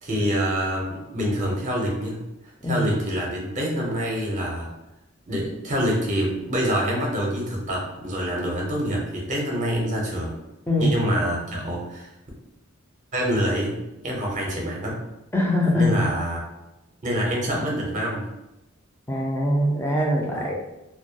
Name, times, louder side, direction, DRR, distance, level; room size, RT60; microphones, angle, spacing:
voice 1, 0.0-2.2 2.6-4.7 5.3-10.4 10.8-12.1 13.1-15.0 15.7-16.4 17.0-18.2 20.3-20.5, equal, 35° right, -2 dB, 0.6 m, -26 dB
voice 2, 10.7-11.0 15.3-16.1 19.1-20.5, left 1 dB, 10° left, -1 dB, 0.3 m, -22 dB
2.2 x 2.2 x 2.7 m, 0.94 s
head